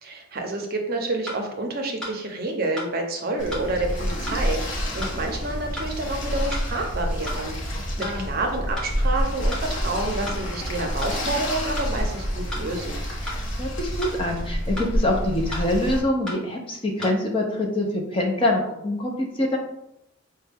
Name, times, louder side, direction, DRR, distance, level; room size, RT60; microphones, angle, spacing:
voice 1, 0.0-13.0, right 2 dB, 45° right, 3 dB, 0.6 m, -29 dB
sound 1, 1.3-1.4 2.0-2.1 2.8-2.9 3.5-3.7 4.3-4.4 5.0-5.1 5.8-5.9 6.5-6.7 7.3-7.4 8.0-8.2 8.8-8.9 9.5-9.6 10.3-10.4 11.0-11.2 11.8-11.9 12.5-12.7 13.3-13.4 14.0-14.2 14.8-14.9 15.5-15.7 16.3-16.4 17.0-17.1, left 1 dB, 5° left, 0.9 m, -33 dB
sound 2, 3.4-16.0, equal, 55° left, 0.9 m, -28 dB
voice 2, 13.6-19.6, left 1 dB, 25° left, 0 dB, 0.6 m, -25 dB
5.1 x 2.2 x 3.4 m, 0.81 s
head